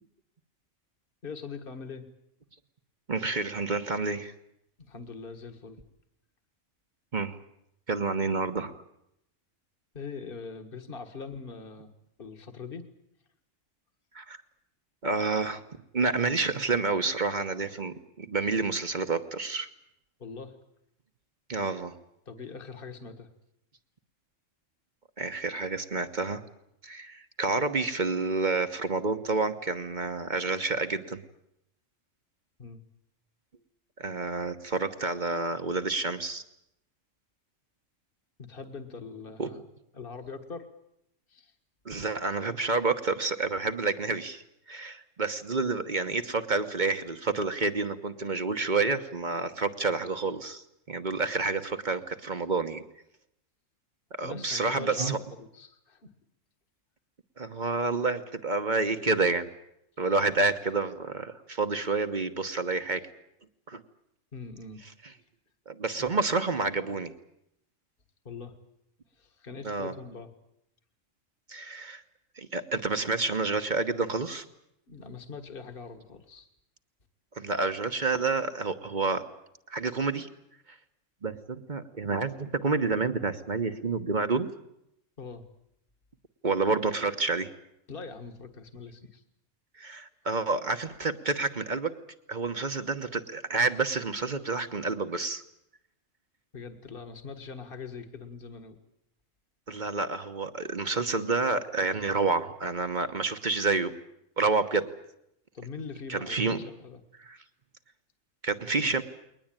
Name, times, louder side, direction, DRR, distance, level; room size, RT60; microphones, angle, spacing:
voice 1, 1.2-2.0 4.8-5.8 9.9-11.9 12.2-12.8 20.2-20.5 22.3-23.3 32.6-32.8 38.4-39.6 39.9-40.7 41.3-41.5 54.2-56.1 64.3-65.1 66.0-66.1 68.3-68.5 69.2-70.3 74.9-76.5 85.2-85.4 87.9-89.2 96.5-98.8 105.5-107.0, left 5 dB, 45° left, 7 dB, 1.9 m, -42 dB
voice 2, 3.1-4.3 7.1-7.4 7.9-8.8 14.1-14.4 15.0-15.6 15.9-19.7 21.5-21.9 25.2-26.4 26.8-31.2 34.0-36.4 39.4-39.5 41.8-44.4 44.7-52.8 54.2-55.2 57.4-59.5 60.0-63.0 63.7-63.8 65.7-67.1 69.6-69.9 71.5-72.0 72.4-74.4 77.4-79.2 79.7-80.3 81.2-84.5 86.4-87.5 89.8-91.9 92.3-95.4 99.7-103.9 104.4-104.8 106.1-106.7 107.2-107.4 108.4-109.0, right 3 dB, 40° right, 8 dB, 1.2 m, -29 dB
21.5 x 20.0 x 9.0 m, 0.79 s
omnidirectional pair, 1.3 m